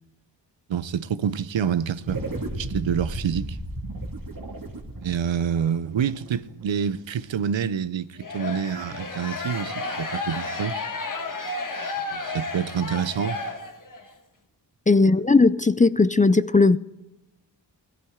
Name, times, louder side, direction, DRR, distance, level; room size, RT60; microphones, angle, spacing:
voice 1, 0.7-2.3 2.5-3.6 5.0-10.8 12.1-13.4, right 8 dB, 90° right, 0.6 m, -27 dB
sound 1, 2.0-6.7, right 1 dB, 50° right, 2.0 m, -34 dB
sound 2, 8.2-14.1, left 3 dB, 45° left, 1.4 m, -32 dB
voice 2, 14.9-16.8, left 3 dB, 20° left, 0.4 m, -17 dB
16.5 x 11.5 x 3.6 m
cardioid pair, 50°, 44 cm